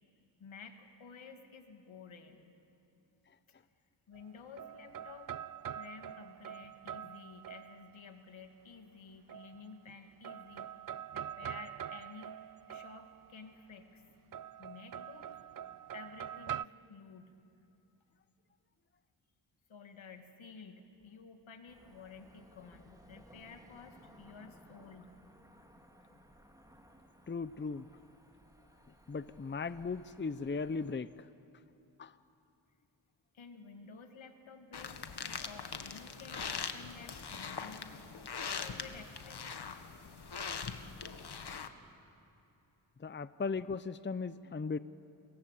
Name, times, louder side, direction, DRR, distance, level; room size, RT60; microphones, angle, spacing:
voice 1, 0.4-2.5 4.1-5.3 5.7-12.4 12.7-14.0 14.6-15.3 15.9-17.3 19.7-25.1 26.1-26.3 33.3-38.0 38.6-39.8, left 5 dB, 80° left, 5 dB, 2.5 m, -53 dB
sound 1, 4.1-8.1 9.3-9.9 10.2-13.4 14.3-16.6, right 10 dB, 45° right, 0.5 m, -44 dB
Cricket / Motor vehicle (road), 21.7-31.0, equal, 5° right, 3.8 m, -60 dB
voice 2, 27.3-27.8 29.1-31.3 32.0-32.1 43.0-44.8, left 4 dB, 25° left, 14 dB, 0.7 m, -37 dB
sound 2, 34.7-41.7, left 5 dB, 55° left, 1.8 m, -42 dB
29.5 x 23.0 x 8.4 m, 3.0 s
cardioid pair, 55°, 47 cm